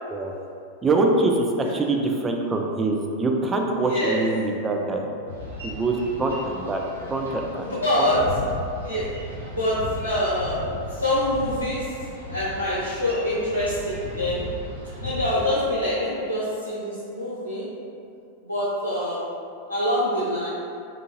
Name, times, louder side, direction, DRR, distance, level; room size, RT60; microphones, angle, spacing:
voice 1, 0.8-5.1 5.6-6.8 7.1-7.6 8.0-8.1, right 2 dB, 15° right, 1 dB, 0.3 m, -24 dB
voice 2, 3.8-4.2 7.6-8.2 8.8-9.1 9.5-10.6 10.9-11.9 12.3-14.5 15.0-17.7 18.4-19.3 19.7-20.5, left 1 dB, 85° left, -10 dB, 0.6 m, -25 dB
Boat Water vehicle, 5.3-15.5, left 1 dB, 90° right, 0.8 m, -36 dB
3.6 x 2.5 x 2.7 m, 2.5 s
figure-of-eight pair, 90°, 0 cm